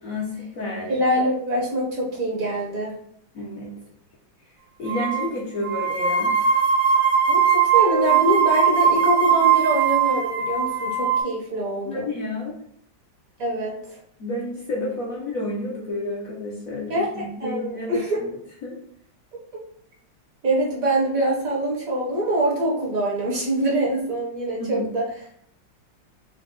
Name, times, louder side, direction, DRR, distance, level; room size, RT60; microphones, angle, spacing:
voice 1, 0.0-1.0 3.3-3.7 4.8-6.4 11.8-12.5 14.2-18.3 18.6-18.8 24.6-24.9, left 1 dB, 60° left, -4 dB, 1.0 m, -30 dB
voice 2, 0.9-2.9 7.3-12.1 13.4-13.8 16.9-17.1 17.4-18.2 20.4-25.0, right 1 dB, 55° right, -2 dB, 1.2 m, -24 dB
sound 1, 4.8-5.3 5.6-11.2, right 7 dB, 90° right, 1.9 m, -20 dB
4.7 x 2.3 x 3.6 m, 0.67 s
omnidirectional pair, 2.0 m